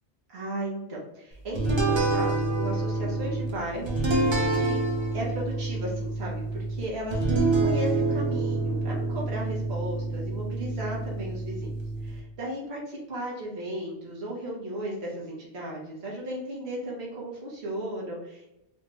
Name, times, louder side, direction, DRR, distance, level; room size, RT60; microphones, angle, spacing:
voice 1, 0.3-4.8 5.1-11.7 12.0-12.8 13.1-18.5, right 1 dB, 70° right, -3 dB, 1.3 m, -35 dB
sound 1, 1.6-12.2, right 2 dB, 35° right, 0.5 m, -27 dB
3.2 x 2.4 x 3.0 m, 0.88 s
omnidirectional pair, 1.1 m